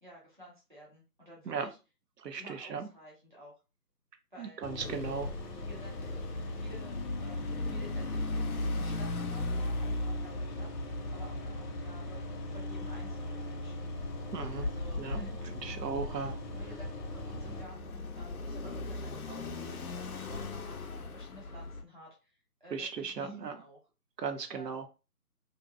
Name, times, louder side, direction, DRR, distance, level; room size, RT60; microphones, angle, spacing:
voice 1, 0.0-1.8 2.4-3.5 4.3-4.7 5.6-6.2 6.5-12.2 12.5-13.9 14.6-15.3 16.5-23.8 24.5-24.9, right 1 dB, 30° right, 0.6 m, -53 dB
voice 2, 2.2-2.9 4.4-5.3 14.3-14.7 15.0-15.3 15.6-16.4 22.7-23.5 24.2-24.8, right 5 dB, 80° right, 0.6 m, -37 dB
sound 1, 4.6-17.6, left 1 dB, 90° left, 0.8 m, -40 dB
sound 2, 4.8-21.8, left 2 dB, 65° left, 0.5 m, -39 dB
2.6 x 2.1 x 2.4 m
figure-of-eight pair, 170°, 48 cm